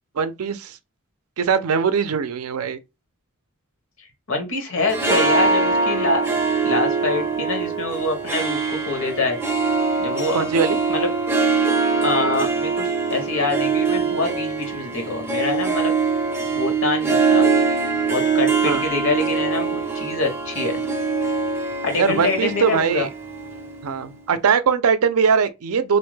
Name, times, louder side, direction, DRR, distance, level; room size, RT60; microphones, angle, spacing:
voice 1, 0.2-0.8 1.4-2.8 10.3-10.8 18.6-18.8 22.0-23.1 23.8-26.0, right 6 dB, 75° right, 0.4 m, -21 dB
voice 2, 4.0-6.2 6.6-9.4 10.0-10.5 10.9-11.1 12.0-15.9 16.5-17.5 18.1-20.8 21.8-23.1, left 3 dB, 65° left, 1.0 m, -25 dB
Harp, 4.8-24.1, right 4 dB, 10° right, 0.5 m, -23 dB
2.6 x 2.2 x 3.1 m
head